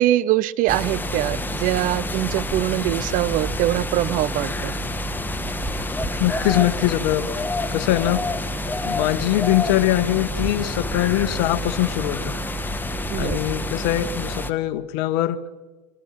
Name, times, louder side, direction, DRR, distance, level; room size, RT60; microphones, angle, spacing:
voice 1, 0.0-4.7 13.1-13.4, right 15 dB, 40° right, 19 dB, 0.7 m, -23 dB
sound 1, 0.7-14.5, left 1 dB, 10° left, 1.4 m, -28 dB
voice 2, 6.2-7.3 7.7-8.2 8.8-12.4 13.2-15.4, left 15 dB, 55° left, 11 dB, 1.8 m, -22 dB
29.5 x 24.5 x 6.1 m, 1.2 s
hypercardioid pair, 105°, 20 cm